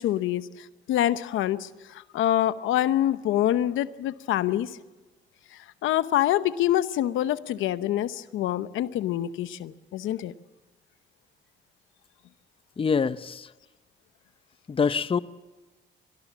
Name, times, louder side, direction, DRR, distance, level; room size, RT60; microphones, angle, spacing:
voice 1, 0.0-4.8 5.5-10.3, left 12 dB, 85° left, 0.9 m, -26 dB
voice 2, 12.8-13.5 14.7-15.2, left 5 dB, 25° left, 0.7 m, -25 dB
24.0 x 19.0 x 7.4 m
cardioid pair, 90°, 20 cm